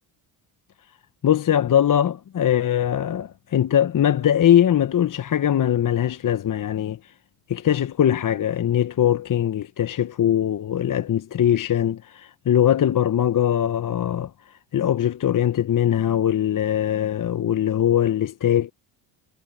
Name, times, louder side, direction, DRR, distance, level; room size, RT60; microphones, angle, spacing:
voice 1, 1.2-7.1 7.5-18.7, left 10 dB, 40° left, 0.9 m, -21 dB
supercardioid pair, 80°, 48 cm